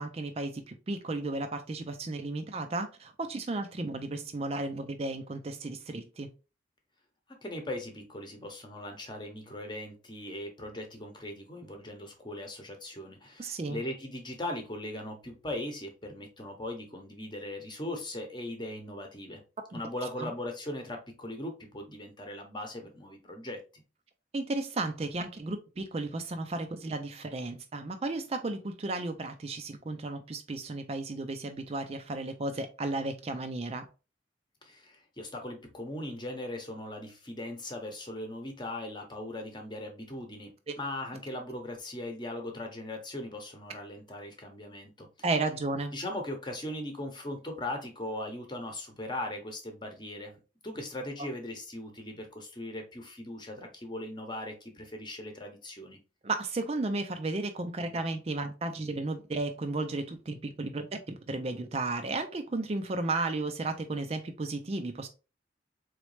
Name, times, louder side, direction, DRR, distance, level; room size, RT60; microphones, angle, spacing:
voice 1, 0.0-6.3 13.4-13.8 19.7-19.8 20.2-20.3 24.3-33.9 45.2-45.9 51.2-51.3 56.2-65.1, right 2 dB, 35° right, 0.4 m, -34 dB
voice 2, 7.3-19.4 19.7-23.6 34.6-45.1 45.9-50.4 50.6-56.0, left 1 dB, 25° left, 0.9 m, -39 dB
4.0 x 3.1 x 3.2 m
head